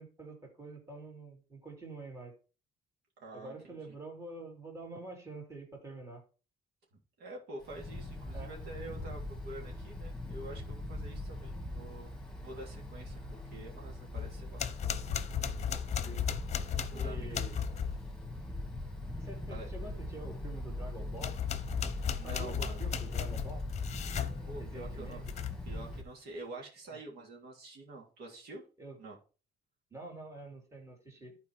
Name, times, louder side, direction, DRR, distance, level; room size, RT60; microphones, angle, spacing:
voice 1, 0.0-2.3 3.3-6.2 8.3-8.5 16.0-16.2 16.9-17.6 19.2-21.4 22.2-23.7 24.6-25.2 26.9-27.0 28.8-29.0 29.9-31.4, right 2 dB, 15° right, 0 dB, 2.8 m, -46 dB
voice 2, 3.2-3.8 7.2-12.1 12.4-14.8 16.6-17.5 19.5-19.7 21.9-22.8 24.5-25.3 25.6-28.6 29.0-29.2, right 2 dB, 70° right, -1 dB, 3.0 m, -47 dB
Wind, 7.6-26.0, left 1 dB, 5° left, 2.3 m, -42 dB
sound 1, 14.1-18.0 21.1-24.4 25.1-25.7, left 8 dB, 40° left, 0.8 m, -35 dB
11.0 x 4.6 x 4.7 m, 0.36 s
cardioid pair, 110°, 17 cm